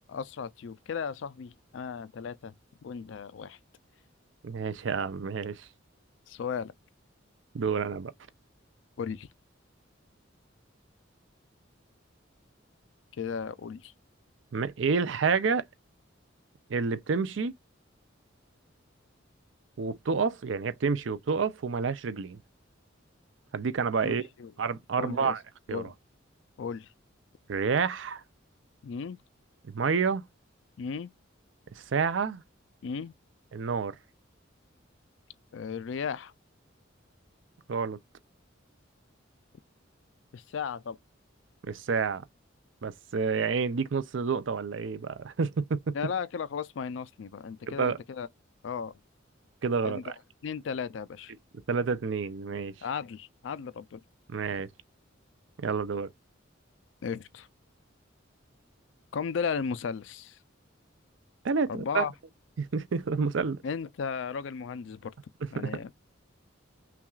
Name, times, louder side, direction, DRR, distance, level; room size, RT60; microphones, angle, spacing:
voice 1, 0.0-2.5 2.8-3.6 6.3-6.7 9.0-9.3 13.1-13.9 24.0-24.5 25.0-25.4 25.7-25.9 26.6-26.9 28.8-29.2 30.8-31.1 32.8-33.1 35.5-36.3 40.3-41.0 45.9-48.3 48.6-49.0 49.8-50.0 50.4-51.3 52.8-54.0 57.0-57.5 59.1-60.4 61.7-62.1 63.6-65.1 65.5-65.9, left 6 dB, 70° left, 0.4 m, -35 dB
voice 2, 4.4-5.7 7.5-8.1 14.5-15.7 16.7-17.5 19.8-22.4 23.5-24.2 24.6-25.4 25.7-25.8 27.5-28.2 29.6-30.2 31.8-32.4 33.5-34.0 37.7-38.0 41.6-42.2 42.8-45.9 47.7-48.0 49.6-50.1 51.7-52.7 54.3-54.7 55.6-56.1 61.4-62.0 62.6-63.6 65.6-65.7, right 5 dB, 70° right, 0.5 m, -29 dB
5.7 x 2.3 x 2.4 m
head